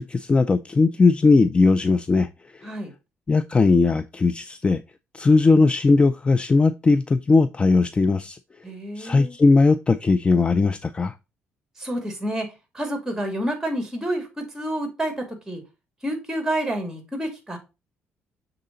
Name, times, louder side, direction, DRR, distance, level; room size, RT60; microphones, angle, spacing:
voice 1, 0.0-2.3 2.5-2.7 3.3-4.8 5.1-8.4 9.0-11.1, left 3 dB, 25° left, 0.4 m, -18 dB
voice 2, 8.6-9.3 11.8-12.5 12.7-15.6 16.0-17.6, right 1 dB, 10° right, 2.4 m, -29 dB
6.6 x 3.9 x 3.8 m
cardioid pair, 95°, 4 cm